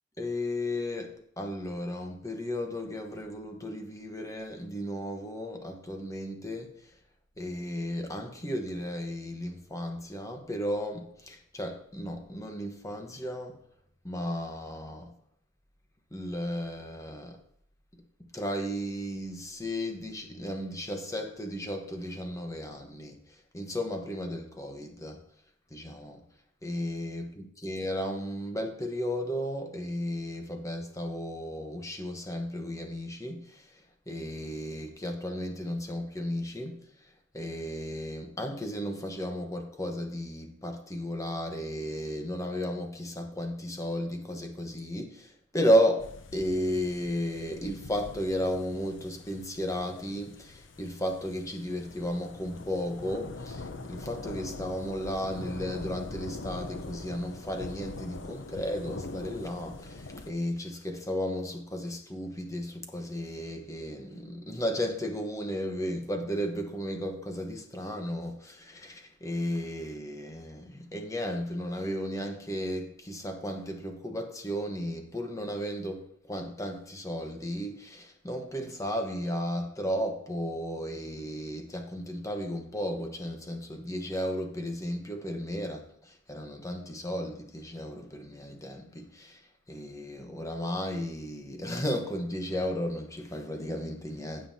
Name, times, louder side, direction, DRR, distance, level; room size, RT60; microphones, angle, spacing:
voice 1, 0.2-6.7 7.4-13.6 14.0-15.1 16.1-17.4 18.3-23.2 23.5-25.2 25.7-26.2 26.6-36.8 37.3-89.4 89.7-94.5, equal, 15° left, 1.2 m, -34 dB
sound 1, 46.0-60.3, left 2 dB, 85° left, 0.8 m, -43 dB
16.5 x 5.5 x 2.8 m
head